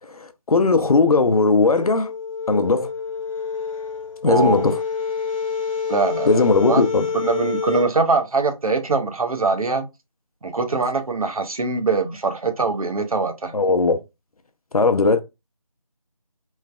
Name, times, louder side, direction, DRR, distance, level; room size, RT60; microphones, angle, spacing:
voice 1, 0.1-2.1 2.5-2.9 4.2-4.8 6.3-7.1 13.5-14.0 14.7-15.2, left 3 dB, 85° left, 0.6 m, -18 dB
sound 1, 1.8-7.9, left 5 dB, 65° left, 1.0 m, -28 dB
voice 2, 4.3-4.7 5.9-6.4 6.7-6.8 7.2-9.8 10.4-13.5, right 4 dB, 80° right, 0.7 m, -22 dB
3.2 x 2.1 x 2.3 m
figure-of-eight pair, 170°, 18 cm